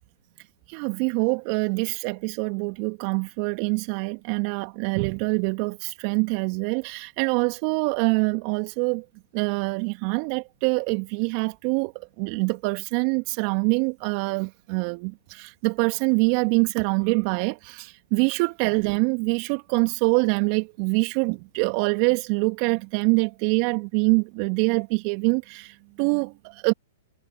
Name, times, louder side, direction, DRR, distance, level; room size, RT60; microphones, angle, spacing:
voice 1, 0.7-9.0 9.3-26.7, right 34 dB, 45° right, 2.4 m, -25 dB
hypercardioid pair, 110°, 0 cm